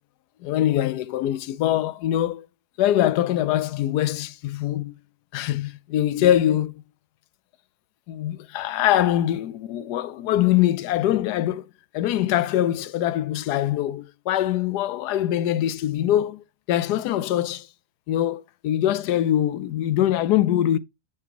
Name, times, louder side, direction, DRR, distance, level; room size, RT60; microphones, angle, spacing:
voice 1, 0.4-2.5 2.8-4.9 5.3-6.8 8.1-11.7 11.9-17.7 18.1-20.8, left 12 dB, 80° left, 1.2 m, -23 dB
7.6 x 5.8 x 2.9 m
omnidirectional pair, 1.7 m